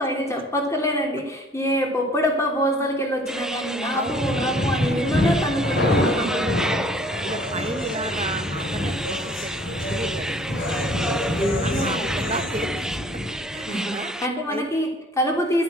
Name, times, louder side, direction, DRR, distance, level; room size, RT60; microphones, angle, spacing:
voice 1, 0.0-6.5 11.3-12.1 13.6-15.6, equal, 15° left, 2 dB, 3.0 m, -25 dB
sound 1, 3.3-14.3, right 1 dB, 5° right, 0.5 m, -31 dB
voice 2, 3.9-4.2 6.1-6.9 7.2-11.0 11.6-12.9 13.5-14.1 14.5-14.7, right 2 dB, 30° right, 9 dB, 1.2 m, -33 dB
sound 2, 4.0-13.7, left 1 dB, 60° left, 4.3 m, -27 dB
sound 3, 6.2-12.7, left 2 dB, 90° left, 3.4 m, -35 dB
12.0 x 9.5 x 7.5 m, 0.99 s
head